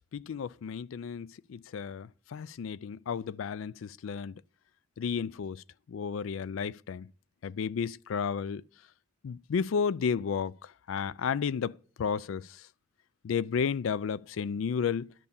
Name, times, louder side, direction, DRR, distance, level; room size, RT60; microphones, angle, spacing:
voice 1, 0.1-4.3 5.0-7.1 7.4-8.6 9.2-12.6 13.2-15.1, left 6 dB, 80° left, 0.4 m, -33 dB
11.0 x 5.4 x 7.0 m
head